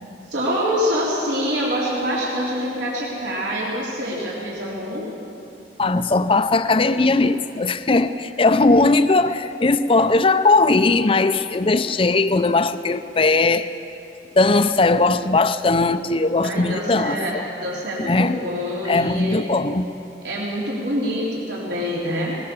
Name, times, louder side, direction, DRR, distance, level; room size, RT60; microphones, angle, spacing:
voice 1, 0.3-5.1 16.4-19.4 20.2-22.4, equal, 75° right, -5 dB, 3.9 m, -25 dB
voice 2, 5.8-13.7 14.3-17.4 18.0-18.4 18.9-19.9, left 3 dB, 30° left, 10 dB, 0.6 m, -19 dB
20.5 x 20.0 x 7.1 m, 2.9 s
head